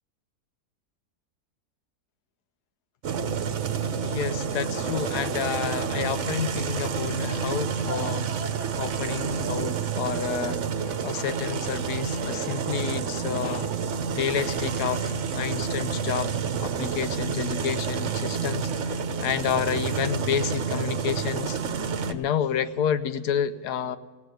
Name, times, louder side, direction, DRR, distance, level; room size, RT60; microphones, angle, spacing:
sound 1, 3.0-22.1, right 6 dB, 55° right, 1.0 m, -29 dB
voice 1, 4.0-8.3 8.8-10.6 11.0-13.7 14.2-16.3 16.6-21.6 22.1-24.0, left 8 dB, 85° left, 12 dB, 1.3 m, -30 dB
17.5 x 8.5 x 9.1 m, 1.4 s
omnidirectional pair, 1.7 m